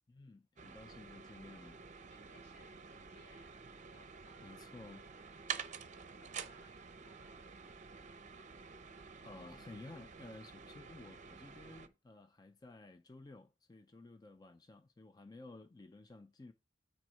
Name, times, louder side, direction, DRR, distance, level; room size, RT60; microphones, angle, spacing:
voice 1, 0.1-1.8 4.4-5.0 9.2-16.5, left 2 dB, 20° left, 0.4 m, -54 dB
sound 1, 0.6-11.9, right 6 dB, 40° right, 0.6 m, -49 dB
voice 2, 2.0-3.6 3.9-4.7 5.2-7.5, equal, 65° left, 3.5 m, -66 dB
9.1 x 4.2 x 4.5 m
head